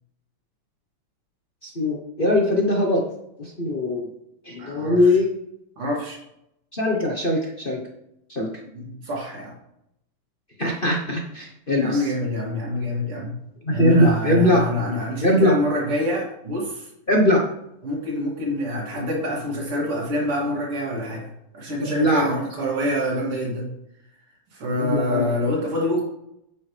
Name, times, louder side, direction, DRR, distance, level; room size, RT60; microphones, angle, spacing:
voice 1, 1.6-3.0 3.4-4.1 4.4-5.3 6.7-7.8 8.3-8.5 10.6-12.0 13.7-14.6 15.2-15.6 17.1-17.4 21.8-22.3 24.8-25.3, left 1 dB, 35° left, -1 dB, 0.9 m, -21 dB
voice 2, 4.6-5.1 5.8-6.2 8.7-9.5 11.8-13.4 13.7-16.9 17.8-21.3 21.5-23.7 24.5-26.0, left 1 dB, 85° right, -3 dB, 3.7 m, -26 dB
9.5 x 8.1 x 3.4 m, 0.79 s
omnidirectional pair, 2.4 m